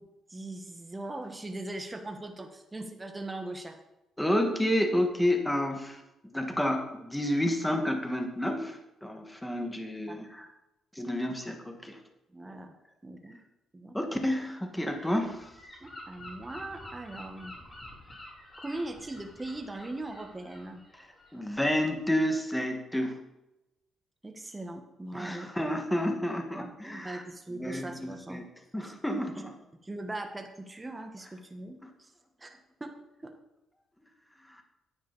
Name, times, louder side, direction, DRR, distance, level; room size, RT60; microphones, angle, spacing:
voice 1, 0.0-3.8 10.1-10.3 12.3-12.7 13.0-13.4 13.7-14.0 15.8-17.5 18.6-20.8 24.2-25.5 26.6-28.4 29.4-29.5 29.8-32.1 32.4-33.0 33.2-33.3, right 2 dB, 20° right, 5 dB, 1.3 m, -40 dB
voice 2, 4.2-10.5 10.9-12.0 13.9-15.5 21.3-23.2 25.1-27.2 27.5-27.9 28.3-28.4 28.7-29.5 34.5-34.6, left 1 dB, 5° left, 4 dB, 1.6 m, -30 dB
Gull seagull / Wind, 14.7-22.0, left 1 dB, 25° left, 3.6 m, -49 dB
10.0 x 9.1 x 4.1 m, 0.95 s
cardioid pair, 90°, 0 cm